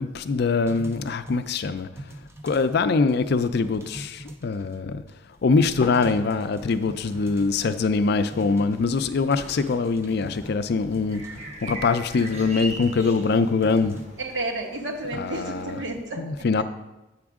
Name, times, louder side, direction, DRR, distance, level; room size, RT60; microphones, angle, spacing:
voice 1, 0.0-1.9 2.4-5.0 5.4-11.2 11.6-14.0 15.1-15.8 16.1-16.6, left 4 dB, 60° left, 11 dB, 0.4 m, -23 dB
sound 1, 0.7-2.8 3.1-5.1 5.5-5.6 5.8-8.0 8.3-14.1, right 1 dB, 15° right, 0.5 m, -43 dB
sound 2, 5.3-15.5, left 2 dB, 35° left, 0.7 m, -45 dB
sound 3, 6.7-16.1, right 1 dB, 35° right, 0.9 m, -43 dB
voice 2, 14.2-16.2, right 2 dB, 70° right, 2 dB, 1.1 m, -31 dB
8.0 x 6.0 x 3.6 m, 1.0 s
head